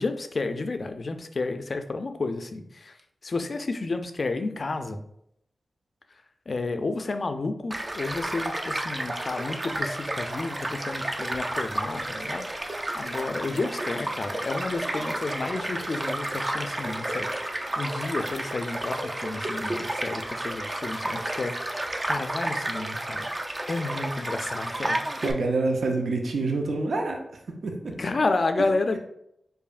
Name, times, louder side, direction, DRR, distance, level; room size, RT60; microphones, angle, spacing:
voice 1, 0.0-2.9 3.2-5.0 6.5-12.4 12.9-21.7 22.0-23.3 23.7-25.1 28.0-29.0, left 3 dB, 60° left, 7 dB, 0.4 m, -31 dB
Child speech kid speaking / Stream / Car passing by, 7.7-25.3, right 1 dB, 35° right, 0.5 m, -31 dB
voice 2, 25.2-27.9, right 3 dB, 85° right, 2 dB, 0.6 m, -27 dB
4.8 x 2.6 x 2.5 m, 0.76 s
cardioid pair, 60°, 0 cm